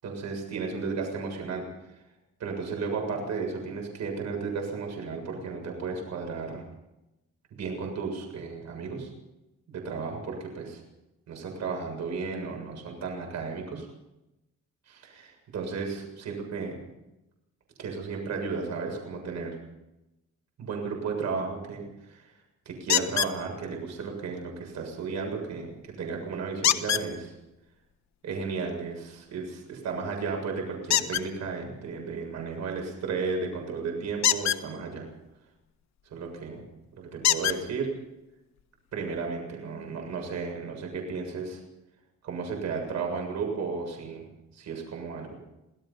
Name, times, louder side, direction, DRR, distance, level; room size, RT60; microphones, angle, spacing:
voice 1, 0.0-1.7 2.4-6.6 7.5-9.1 9.7-10.8 11.3-13.9 14.9-16.8 17.8-19.6 20.6-22.3 22.7-27.4 28.2-35.1 36.1-36.6 36.9-38.0 38.9-41.6 42.2-44.3 44.5-45.3, right 5 dB, 65° right, 2 dB, 7.3 m, -34 dB
sound 1, 22.9-23.4 26.6-27.1 30.9-31.2 34.2-34.6 36.3-36.4 37.2-37.6 38.6-38.7 39.2-39.3, left 10 dB, 70° left, 1.4 m, -24 dB
26.5 x 17.5 x 5.7 m, 0.93 s
cardioid pair, 125°, 29 cm